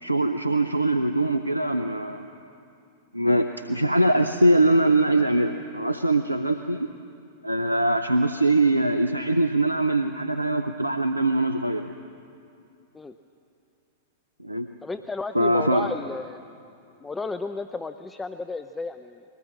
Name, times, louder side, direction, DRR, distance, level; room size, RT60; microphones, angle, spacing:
voice 1, 0.0-2.4 3.1-6.9 7.4-11.9 14.4-14.7 15.3-15.9, right 1 dB, 90° right, 8 dB, 0.6 m, -22 dB
voice 2, 14.8-16.4 17.0-19.2, left 3 dB, 10° left, 9 dB, 0.5 m, -33 dB
22.0 x 18.5 x 7.5 m, 2.6 s
figure-of-eight pair, 95°, 0 cm